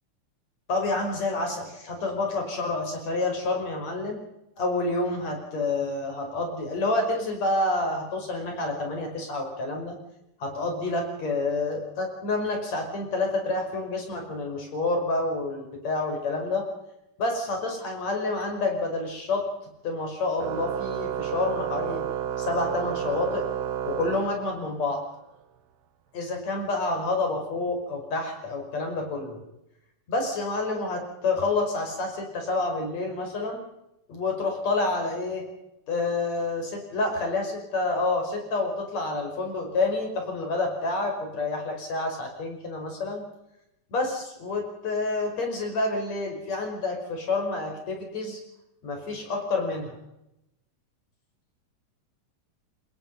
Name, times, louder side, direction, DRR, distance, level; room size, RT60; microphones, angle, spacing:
voice 1, 0.7-4.2 4.6-10.0 10.4-16.7 17.2-19.5 19.8-22.0 22.4-23.5 23.9-25.0 26.1-29.4 30.1-33.6 34.1-35.5 35.9-43.2 43.9-48.4 48.8-50.0, left 2 dB, 55° left, 3 dB, 6.5 m, -28 dB
Organ, 20.4-24.9, right 10 dB, 65° right, 2.0 m, -31 dB
26.5 x 21.5 x 5.5 m, 0.86 s
omnidirectional pair, 3.6 m